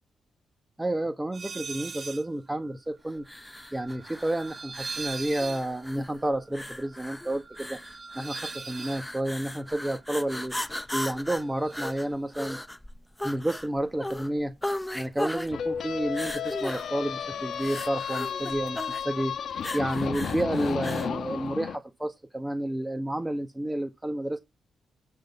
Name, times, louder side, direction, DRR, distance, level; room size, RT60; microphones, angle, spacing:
voice 1, 0.8-3.2 3.7-7.8 8.1-10.6 10.9-12.6 13.2-14.5 14.9-24.4, right 1 dB, 15° right, 1.4 m, -30 dB
sound 1, 1.3-2.3 2.6-10.8 11.0-12.1, right 5 dB, 50° right, 1.6 m, -42 dB
sound 2, 3.2-21.2, left 1 dB, 10° left, 0.8 m, -37 dB
sound 3, 15.5-21.8, left 7 dB, 70° left, 1.5 m, -33 dB
10.5 x 4.0 x 6.8 m
supercardioid pair, 60°, 0 cm